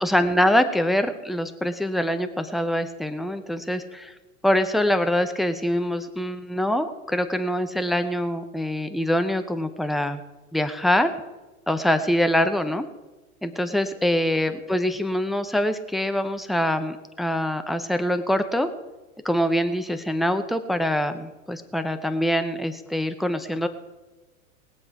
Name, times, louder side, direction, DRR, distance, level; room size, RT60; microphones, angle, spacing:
voice 1, 0.0-4.1 4.4-10.2 10.5-11.1 11.7-12.9 13.4-18.7 19.2-23.7, equal, ahead, 9 dB, 0.6 m, -24 dB
20.0 x 7.5 x 4.6 m, 1.1 s
hypercardioid pair, 100°, 43 cm